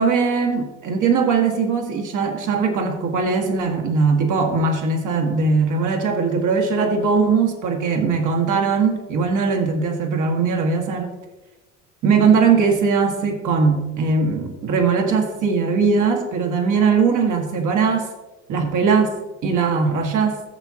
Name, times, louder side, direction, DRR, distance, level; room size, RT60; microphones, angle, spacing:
voice 1, 0.0-11.1 12.0-18.1 18.5-20.4, right 5 dB, 50° right, 3 dB, 1.9 m, -20 dB
13.5 x 7.2 x 3.0 m, 1.1 s
hypercardioid pair, 70°, 39 cm